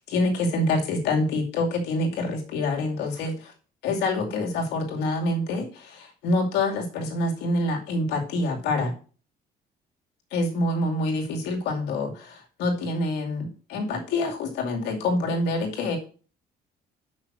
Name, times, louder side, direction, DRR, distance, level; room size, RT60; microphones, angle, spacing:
voice 1, 0.1-3.5 3.8-8.9 10.3-16.0, left 2 dB, 90° left, 1 dB, 2.5 m, -26 dB
6.2 x 6.2 x 6.1 m, 0.39 s
cardioid pair, 110°, 17 cm